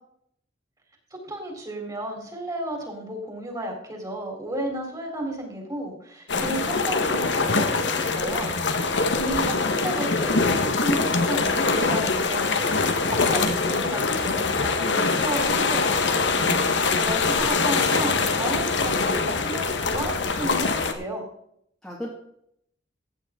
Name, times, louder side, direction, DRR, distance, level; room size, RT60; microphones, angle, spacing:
voice 1, 1.1-16.3 16.7-21.3, right 1 dB, 20° right, 1 dB, 3.9 m, -33 dB
sound 1, 6.3-20.9, left 4 dB, 70° left, 1.4 m, -23 dB
voice 2, 16.3-17.4 21.8-22.1, equal, 5° left, -4 dB, 2.0 m, -37 dB
15.0 x 9.4 x 3.8 m, 0.71 s
head